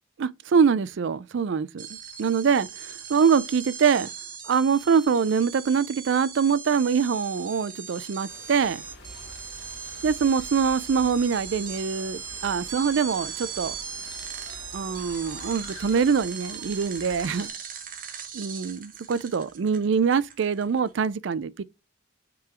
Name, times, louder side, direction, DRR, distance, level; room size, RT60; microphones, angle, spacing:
voice 1, 0.2-1.9 2.2-4.1 4.4-8.8 10.0-13.7 14.7-17.5 18.3-21.6, right 6 dB, 65° right, 0.4 m, -24 dB
sound 1, 1.8-20.9, right 7 dB, 45° right, 1.0 m, -39 dB
sound 2, 8.3-17.5, left 1 dB, 50° left, 2.0 m, -46 dB
5.8 x 3.8 x 4.4 m
head